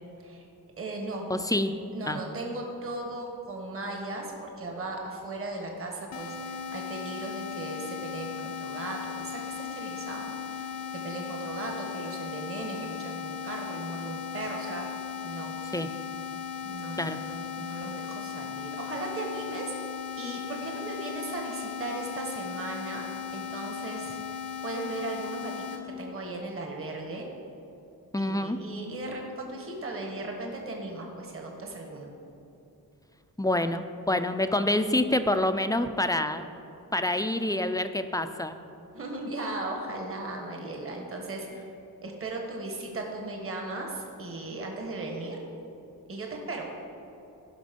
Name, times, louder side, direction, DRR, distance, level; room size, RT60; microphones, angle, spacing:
voice 1, 0.8-1.3 1.6-1.7 1.9-14.9 15.2-15.6 16.6-19.7 20.2-27.3 28.2-32.1 38.9-41.7 42.0-45.4 46.1-46.7, right 2 dB, 40° right, 1 dB, 1.4 m, -37 dB
voice 2, 1.3-1.7 2.1-2.2 15.7-15.9 17.0-17.2 28.1-28.6 33.4-36.5 36.9-38.6, left 1 dB, 10° left, 9 dB, 0.3 m, -27 dB
sound 1, 6.1-25.8, left 7 dB, 80° left, 0.9 m, -37 dB
15.5 x 5.8 x 5.2 m, 2.9 s
wide cardioid pair, 155°, 36 cm